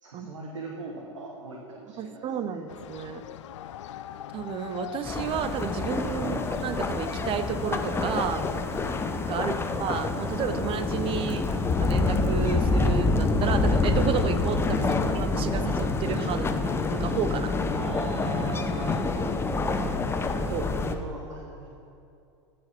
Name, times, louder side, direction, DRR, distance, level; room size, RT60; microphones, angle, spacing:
voice 1, 0.0-2.6 6.1-6.4 9.4-9.6 11.4-11.6 14.8-15.0 17.7-19.0 20.5-21.7, right 2 dB, 85° right, -2 dB, 1.3 m, -40 dB
voice 2, 2.0-3.2 4.3-8.4 9.3-9.5 9.8-11.4 11.8-14.8 15.1-16.5 16.9-17.5 19.2-19.3 20.5-20.7, right 7 dB, 35° right, 11 dB, 0.6 m, -31 dB
sound 1, 2.7-9.4, left 11 dB, 70° left, 0.5 m, -41 dB
sound 2, 5.0-20.9, left 3 dB, 15° left, 0.6 m, -27 dB
14.0 x 5.1 x 5.8 m, 2.7 s
hypercardioid pair, 95°, 16 cm